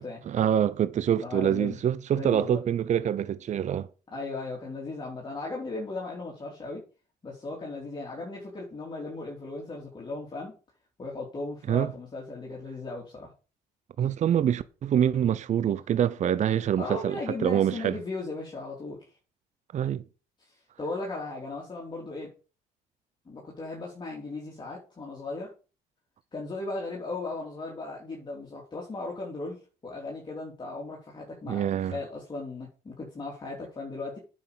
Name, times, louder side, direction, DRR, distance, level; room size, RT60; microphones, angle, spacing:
voice 1, 0.0-3.9 11.7-11.9 14.0-18.0 19.7-20.0 31.5-32.0, right 9 dB, 45° right, 0.7 m, -26 dB
voice 2, 1.2-1.8 2.1-2.6 4.1-6.8 7.2-10.5 11.0-13.3 16.8-19.1 20.4-20.5 20.8-22.3 23.3-25.5 26.3-34.2, left 3 dB, 25° left, 3.6 m, -37 dB
9.3 x 6.4 x 6.9 m
cardioid pair, 110°, 17 cm